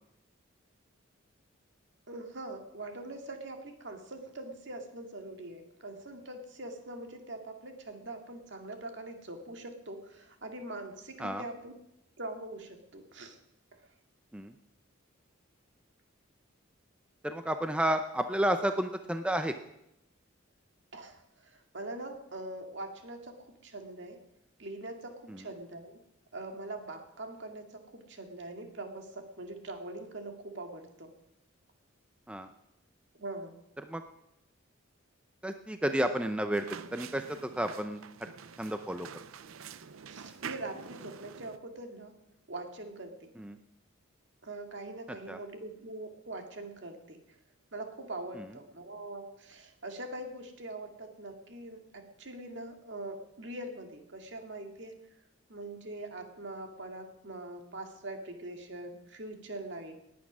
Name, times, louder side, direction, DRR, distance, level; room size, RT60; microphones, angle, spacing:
voice 1, 2.1-11.7 12.2-13.4 13.7-13.9 20.9-24.2 24.6-26.0 26.3-31.1 33.1-33.6 40.1-42.2 42.5-43.3 44.4-47.4 47.7-55.1 55.5-59.9, right 2 dB, 60° right, 4 dB, 2.1 m, -43 dB
voice 2, 17.2-19.5 25.3-25.4 32.3-32.5 33.9-34.0 35.4-36.7 36.9-38.0 38.6-39.1 43.4-43.6 45.3-45.4, right 1 dB, 5° right, 7 dB, 0.5 m, -31 dB
sound 1, 36.5-41.6, right 7 dB, 90° right, 0.6 m, -46 dB
19.0 x 8.5 x 6.1 m, 0.85 s
head